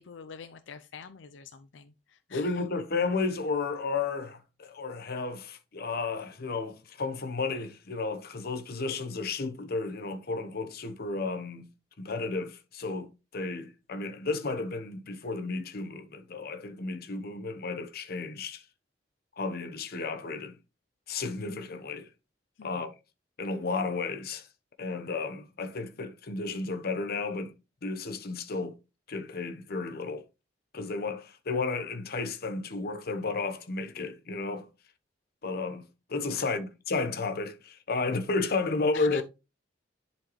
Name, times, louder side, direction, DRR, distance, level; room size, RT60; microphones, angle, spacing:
voice 1, 0.0-2.6 22.6-22.8 36.3-36.6 38.9-39.2, left 6 dB, 85° left, 0.5 m, -46 dB
voice 2, 2.3-11.7 12.0-18.6 19.4-20.6 21.1-22.1 22.6-22.9 23.4-24.5 24.8-27.5 27.8-28.7 29.1-30.2 30.7-34.7 35.4-39.2, left 3 dB, 55° left, 0.9 m, -33 dB
10.5 x 4.3 x 3.1 m
head